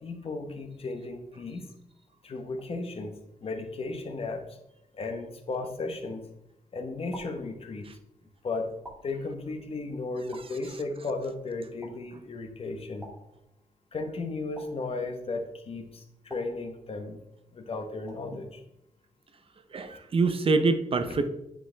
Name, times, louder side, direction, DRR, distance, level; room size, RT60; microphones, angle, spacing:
voice 1, 0.0-1.7 2.2-4.6 4.9-6.3 6.7-7.9 8.4-8.7 9.0-13.1 13.9-17.2 17.5-18.6, left 3 dB, 45° left, 5 dB, 1.0 m, -35 dB
sound 1, 6.0-6.5 7.1-8.1 8.8-9.7 10.3-11.2 11.8-12.5 13.0-13.9 14.5-15.4 16.3-17.3 18.1-18.7, equal, 5° right, 2.0 m, -51 dB
voice 2, 19.7-21.3, right 3 dB, 40° right, 8 dB, 0.6 m, -25 dB
9.2 x 4.9 x 3.3 m, 0.84 s
wide cardioid pair, 120°, 14 cm